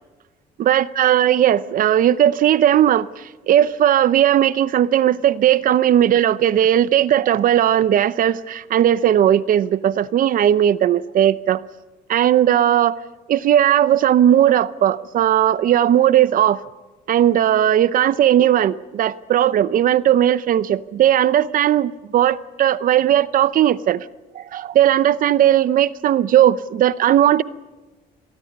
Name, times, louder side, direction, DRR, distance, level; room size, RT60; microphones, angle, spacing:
voice 1, 0.6-11.6 12.1-13.0 13.3-16.6 17.1-24.1 24.3-27.4, right 11 dB, 55° right, 17 dB, 0.7 m, -17 dB
29.5 x 22.5 x 5.4 m, 1.2 s
cardioid pair, 110°, 17 cm